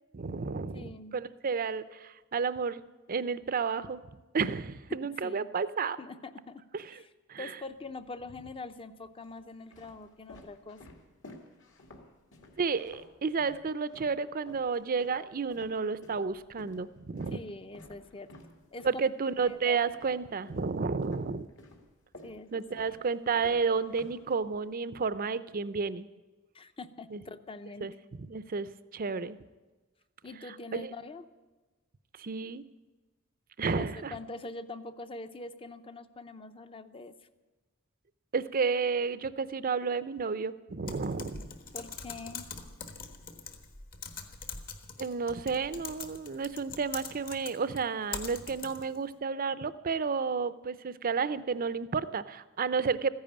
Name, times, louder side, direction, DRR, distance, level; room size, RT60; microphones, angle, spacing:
voice 1, 0.1-2.8 3.1-4.0 4.3-6.0 6.7-6.8 7.3-7.5 12.6-17.4 18.8-21.5 22.5-26.1 27.1-27.2 27.8-29.4 30.7-30.9 32.2-32.6 33.6-34.1 38.3-41.5 45.0-53.1, right 5 dB, 40° right, 14 dB, 0.5 m, -31 dB
voice 2, 0.7-1.1 4.9-5.5 6.0-6.6 6.9-7.1 7.4-10.8 17.3-18.3 18.7-18.9 19.5-19.8 22.2-22.8 26.5-27.9 30.2-31.2 33.6-37.2 41.7-42.5, left 3 dB, 25° left, 11 dB, 0.7 m, -44 dB
sound 1, 7.7-8.4 9.1-14.2 14.5-20.7 21.0-24.7, left 2 dB, 60° left, 2.2 m, -53 dB
Typing, 40.9-49.0, left 5 dB, 45° left, 1.3 m, -43 dB
14.5 x 10.5 x 8.7 m, 1.2 s
head